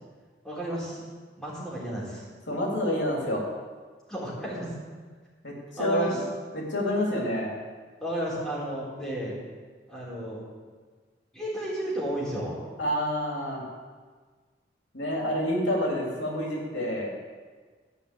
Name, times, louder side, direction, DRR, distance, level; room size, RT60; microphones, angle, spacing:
voice 1, 0.4-1.0 1.4-2.2 4.1-4.7 5.8-6.1 8.0-9.3 9.9-10.4 11.3-12.6, right 1 dB, 5° left, -7 dB, 4.2 m, -32 dB
voice 2, 2.5-3.5 5.4-5.5 5.8-6.2 6.5-7.5 12.8-13.7 14.9-17.1, equal, 90° left, -2 dB, 2.9 m, -28 dB
14.0 x 6.1 x 8.3 m, 1.5 s
head